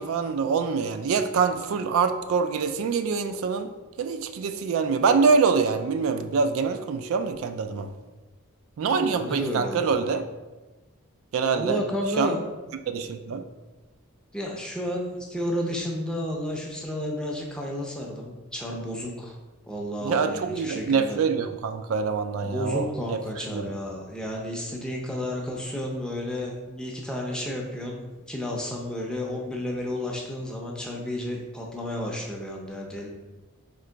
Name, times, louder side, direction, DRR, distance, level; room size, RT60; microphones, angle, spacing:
voice 1, 0.0-3.7 4.0-7.9 8.8-10.2 11.3-11.8 12.2-12.4 12.9-13.4 20.0-23.6, right 5 dB, 70° right, 8 dB, 0.3 m, -25 dB
voice 2, 8.8-10.1 11.5-12.4 14.3-19.4 19.6-21.2 22.4-33.1, left 1 dB, 5° left, -1 dB, 0.5 m, -32 dB
3.7 x 2.9 x 4.4 m, 1.2 s
head